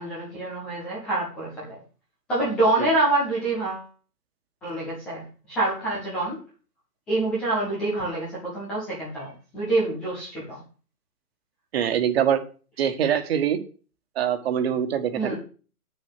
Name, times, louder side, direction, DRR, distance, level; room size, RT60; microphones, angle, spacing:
voice 1, 0.0-1.8 2.3-3.8 4.6-5.2 5.5-6.4 7.1-10.6 15.2-15.4, right 2 dB, ahead, -7 dB, 0.5 m, -26 dB
voice 2, 11.7-12.4 12.8-13.6 14.1-15.4, right 9 dB, 40° right, 8 dB, 1.5 m, -24 dB
7.9 x 6.8 x 7.6 m, 0.37 s
figure-of-eight pair, 140°, 47 cm